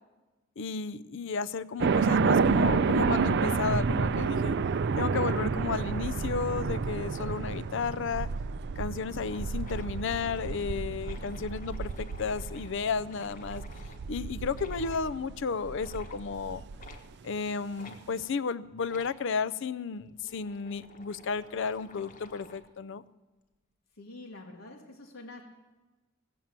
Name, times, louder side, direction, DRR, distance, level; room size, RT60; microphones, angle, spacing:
voice 1, 0.6-4.6 5.0-8.3 8.8-13.6 14.1-16.6 17.2-23.0, left 5 dB, 60° left, 17 dB, 0.5 m, -33 dB
sound 1, 1.8-16.9, right 5 dB, 55° right, 0.4 m, -29 dB
funny duck like bubbing in water, 8.6-8.7 8.9-9.0 9.2-14.1 14.5-15.1 15.7-16.3 16.8-17.1 17.8-18.0 18.8-19.2 19.9-22.7, left 2 dB, 40° left, 1.2 m, -52 dB
voice 2, 23.9-25.4, left 2 dB, 85° left, -1 dB, 1.6 m, -46 dB
16.5 x 7.3 x 7.4 m, 1.2 s
head